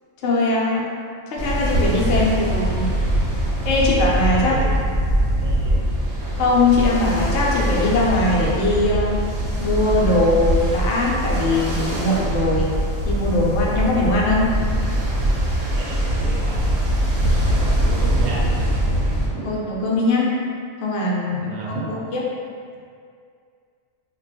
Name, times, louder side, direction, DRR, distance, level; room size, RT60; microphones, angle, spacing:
voice 1, 0.2-0.9 1.3-2.9 3.6-4.5 6.3-9.1 9.6-12.7 13.0-14.5 19.4-20.3 20.8-21.5 21.9-22.2, left 2 dB, 65° left, -4 dB, 0.8 m, -20 dB
Ocean, 1.4-19.3, right 1 dB, 60° right, 0.8 m, -22 dB
voice 2, 4.3-4.9 5.4-5.9 15.7-16.9 17.2-18.7 19.3-19.6 21.3-22.0, right 2 dB, 85° right, -4 dB, 1.0 m, -34 dB
2.3 x 2.2 x 3.9 m, 2.3 s
omnidirectional pair, 1.4 m